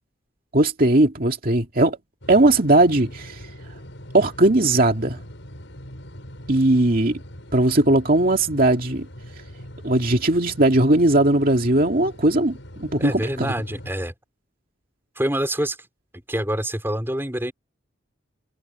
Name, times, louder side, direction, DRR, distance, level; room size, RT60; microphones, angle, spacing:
voice 1, 0.5-2.0 2.3-3.4 4.1-5.2 6.5-7.2 7.5-9.1 9.8-13.5, right 2 dB, 45° right, 2.4 m, -18 dB
sound 1, 2.2-13.9, equal, 70° left, 7.2 m, -41 dB
voice 2, 13.0-14.1 15.2-15.8 16.3-17.5, right 1 dB, 10° right, 4.7 m, -26 dB
head